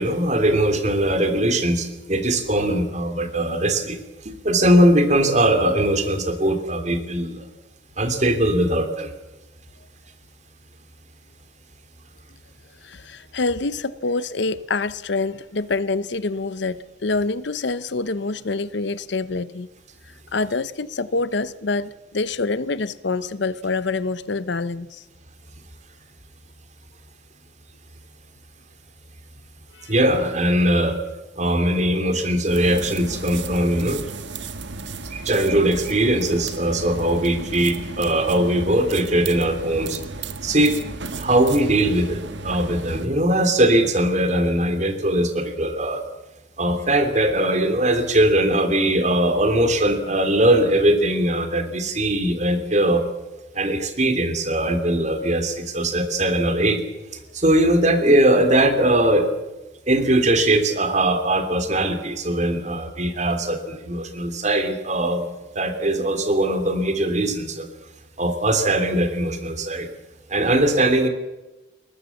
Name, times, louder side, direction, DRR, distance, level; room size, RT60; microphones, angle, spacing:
voice 1, 0.0-4.0 4.4-7.4 8.0-9.1 29.9-31.0 31.4-34.0 35.1-40.0 40.4-40.7 41.1-46.0 46.6-53.0 53.5-56.8 57.3-59.3 59.9-65.3 65.5-67.7 68.2-69.9 70.3-71.1, right 1 dB, 35° right, 3.1 m, -20 dB
voice 2, 12.8-19.7 20.3-25.0 29.7-29.9, left 3 dB, 65° left, 0.7 m, -26 dB
sound 1, 32.4-43.1, right 3 dB, 65° right, 1.4 m, -34 dB
22.0 x 19.0 x 7.2 m
head